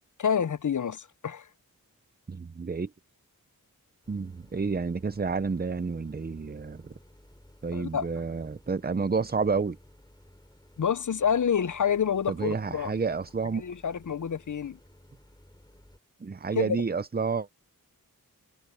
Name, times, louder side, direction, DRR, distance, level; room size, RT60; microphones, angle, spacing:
voice 1, 0.2-1.4 7.7-8.1 10.8-12.9 13.6-14.8 16.5-16.8, left 7 dB, 60° left, 0.6 m, -28 dB
voice 2, 2.3-2.9 4.1-6.9 7.6-9.8 12.3-13.6 16.2-17.5, right 4 dB, 25° right, 0.5 m, -30 dB
sound 1, 4.0-16.0, left 1 dB, 10° left, 5.9 m, -56 dB
wide cardioid pair, 55°, 35 cm